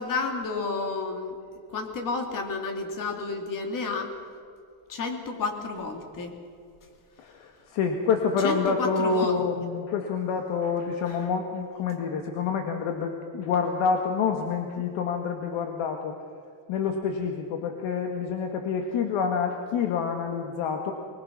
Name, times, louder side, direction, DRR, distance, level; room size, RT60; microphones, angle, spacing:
voice 1, 0.0-1.3 1.7-4.1 4.9-6.3 8.4-9.4, left 4 dB, 40° left, 5 dB, 2.6 m, -31 dB
voice 2, 7.2-16.1 16.7-20.9, left 5 dB, 70° left, 4 dB, 1.9 m, -27 dB
24.5 x 20.0 x 6.0 m, 2.3 s
cardioid pair, 160°, 50 cm